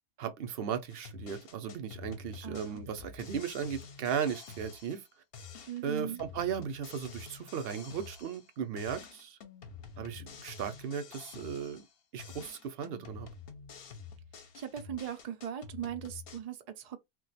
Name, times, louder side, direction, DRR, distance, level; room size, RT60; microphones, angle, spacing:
voice 1, 0.2-5.0 5.8-9.4 10.0-11.8 12.1-13.3, right 7 dB, 60° right, 0.7 m, -36 dB
sound 1, 0.9-5.1 5.3-8.5 8.8-11.9 12.2-16.4, left 6 dB, 60° left, 0.8 m, -48 dB
voice 2, 2.4-2.8 5.7-6.2 14.5-17.0, right 10 dB, 80° right, 0.3 m, -39 dB
2.4 x 2.2 x 3.9 m
omnidirectional pair, 1.3 m